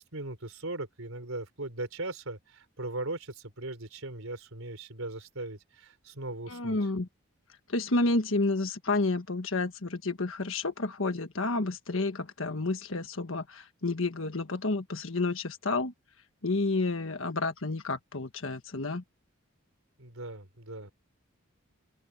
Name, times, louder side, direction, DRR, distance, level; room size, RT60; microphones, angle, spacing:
voice 1, 0.0-6.8 20.0-20.9, right 2 dB, 85° right, 3.8 m, -39 dB
voice 2, 6.5-7.1 7.7-15.9 16.4-19.0, left 2 dB, 70° left, 1.4 m, -30 dB
open air
head